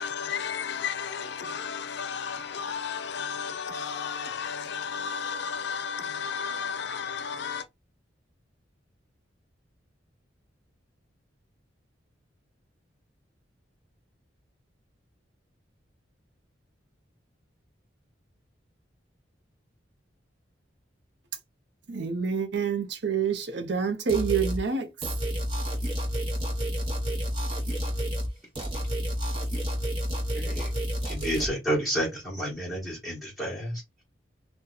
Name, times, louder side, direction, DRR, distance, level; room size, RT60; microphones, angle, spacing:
voice 1, 0.0-7.6, left 6 dB, 65° left, 0.5 m, -33 dB
voice 2, 21.9-24.9, right 6 dB, 65° right, 0.7 m, -27 dB
sound 1, 24.1-24.6 25.0-28.3 28.6-31.5, equal, 30° right, 1.0 m, -30 dB
voice 3, 30.3-30.7 31.0-34.0, equal, ahead, 1.1 m, -30 dB
2.8 x 2.2 x 3.8 m
head